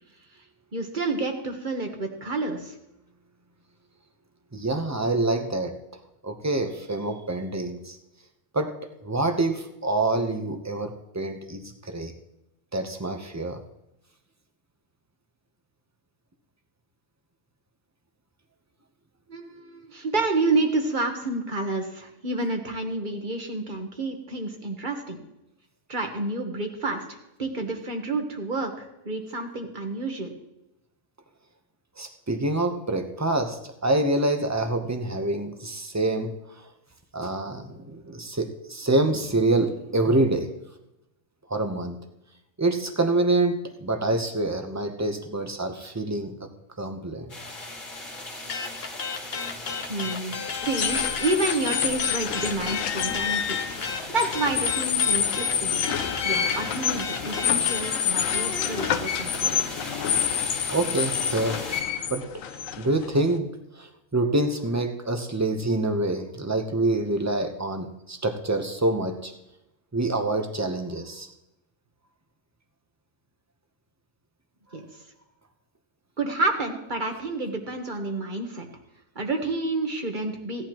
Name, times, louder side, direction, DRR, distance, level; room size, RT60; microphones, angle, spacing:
voice 1, 0.7-2.8 19.3-25.2 25.9-30.3 49.9-53.6 54.1-56.0 56.2-59.6 74.7-74.8 76.2-78.7 79.1-80.7, right 2 dB, 40° right, 4 dB, 1.4 m, -29 dB
voice 2, 4.5-5.7 6.2-8.0 8.5-8.7 9.0-12.1 12.7-13.6 32.0-36.3 37.1-40.5 41.5-42.0 42.6-46.3 46.8-47.3 59.7-59.8 60.7-61.6 62.1-62.3 62.8-63.5 63.8-69.3 69.9-71.3, right 2 dB, 15° right, 6 dB, 0.7 m, -26 dB
sound 1, 47.3-61.8, left 1 dB, 40° left, 2.2 m, -38 dB
sound 2, 48.5-51.4 51.7-59.0, left 6 dB, 55° left, 1.0 m, -33 dB
sound 3, 50.6-63.4, left 8 dB, 85° left, 1.1 m, -28 dB
16.5 x 10.0 x 3.0 m, 0.90 s
omnidirectional pair, 1.3 m